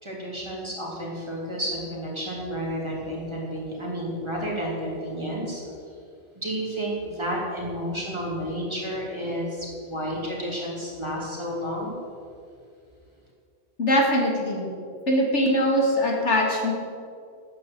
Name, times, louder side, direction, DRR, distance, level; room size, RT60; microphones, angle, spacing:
voice 1, 0.0-5.7 6.3-12.0, equal, 25° right, -4 dB, 3.3 m, -31 dB
voice 2, 13.8-14.7 15.1-16.7, equal, 85° left, -1 dB, 2.7 m, -22 dB
12.0 x 9.3 x 7.8 m, 2.4 s
omnidirectional pair, 1.2 m